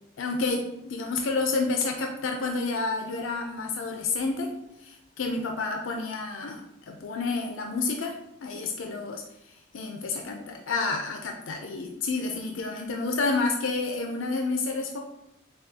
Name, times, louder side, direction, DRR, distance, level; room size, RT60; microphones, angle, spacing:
voice 1, 0.2-4.5 4.8-8.2 8.4-15.0, left 3 dB, 75° left, 2 dB, 0.5 m, -30 dB
6.8 x 2.3 x 2.7 m, 0.89 s
head